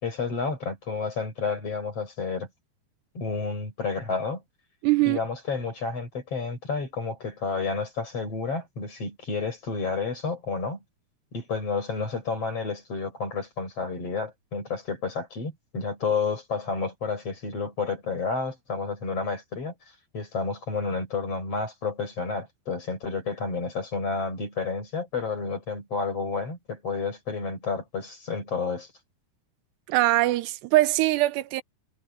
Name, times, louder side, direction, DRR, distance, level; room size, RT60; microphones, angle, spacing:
voice 1, 0.0-2.5 3.2-4.4 5.1-10.8 11.3-19.7 20.1-28.9, left 4 dB, 35° left, 6.8 m, -30 dB
voice 2, 4.8-5.2 29.9-31.6, right 17 dB, 90° right, 3.0 m, -22 dB
omnidirectional pair, 4.8 m